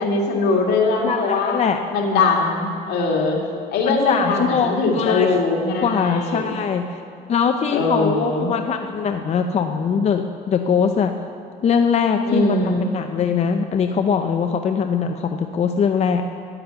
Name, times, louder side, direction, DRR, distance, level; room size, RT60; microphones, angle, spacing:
voice 1, 0.0-1.6 1.9-3.4 3.7-6.5 7.7-8.5 12.3-12.9, left 3 dB, 75° left, 0 dB, 2.3 m, -21 dB
voice 2, 1.0-1.8 3.9-5.3 5.8-7.0 7.3-11.1 11.6-16.2, left 6 dB, 40° left, 6 dB, 0.6 m, -21 dB
10.5 x 8.8 x 8.1 m, 2.4 s
cardioid pair, 110°, 17 cm